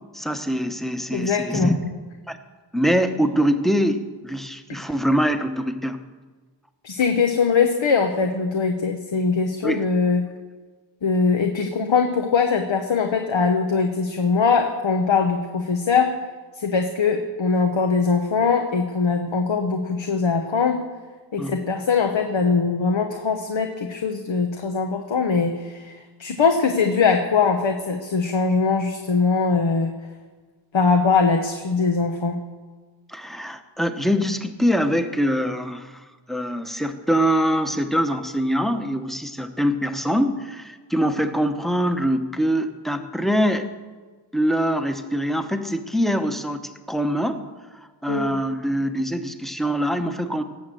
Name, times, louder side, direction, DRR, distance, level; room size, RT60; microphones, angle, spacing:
voice 1, 0.1-1.7 2.3-2.4 2.7-6.0 9.6-9.8 21.4-21.6 33.1-43.7 44.3-47.5 48.0-50.4, equal, ahead, 7 dB, 1.0 m, -23 dB
voice 2, 1.1-1.7 6.8-10.3 11.0-16.2 16.6-20.8 21.3-30.0 30.7-32.4 48.1-48.4, left 5 dB, 70° left, 5 dB, 1.1 m, -21 dB
18.0 x 6.5 x 7.7 m, 1.4 s
wide cardioid pair, 85°, 46 cm